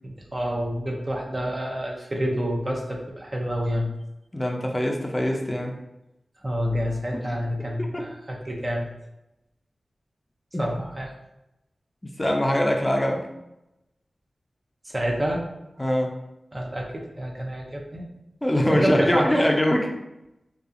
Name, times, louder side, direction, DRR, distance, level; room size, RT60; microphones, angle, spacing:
voice 1, 0.0-3.9 6.4-8.9 10.6-11.1 14.8-15.5 16.5-18.1 18.8-19.5, equal, 35° right, 0 dB, 0.5 m, -28 dB
voice 2, 4.3-5.8 7.9-8.1 10.5-10.6 12.0-13.3 15.8-16.2 18.4-19.9, left 1 dB, 20° left, 1 dB, 0.4 m, -23 dB
2.6 x 2.3 x 2.4 m, 0.91 s
cardioid pair, 55°, 0 cm